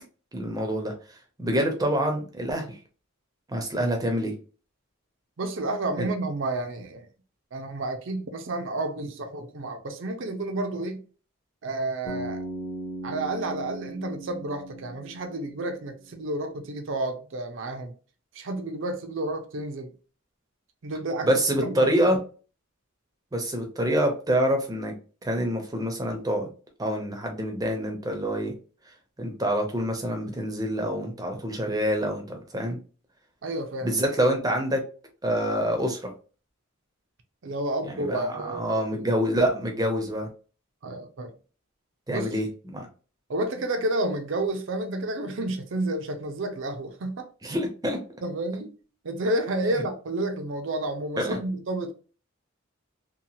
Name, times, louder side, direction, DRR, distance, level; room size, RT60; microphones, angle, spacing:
voice 1, 0.3-0.9 1.4-2.7 3.5-4.3 6.0-6.1 21.2-22.2 23.3-24.9 25.2-26.5 26.8-28.5 29.2-32.8 33.8-34.8 35.2-36.1 37.9-40.3 42.1-42.9 47.4-48.0 51.2-51.4, equal, 20° right, 0.6 m, -26 dB
voice 2, 5.4-7.1 7.5-11.0 11.6-12.5 13.0-17.9 18.3-19.9 20.8-21.3 21.6-22.2 33.4-34.0 37.4-39.0 40.8-41.3 42.1-42.3 43.3-47.3 48.2-48.7 49.0-51.9, right 2 dB, 65° right, 0.5 m, -30 dB
Bass guitar, 12.1-16.1, right 1 dB, 20° left, 0.7 m, -38 dB
2.8 x 2.2 x 2.7 m
head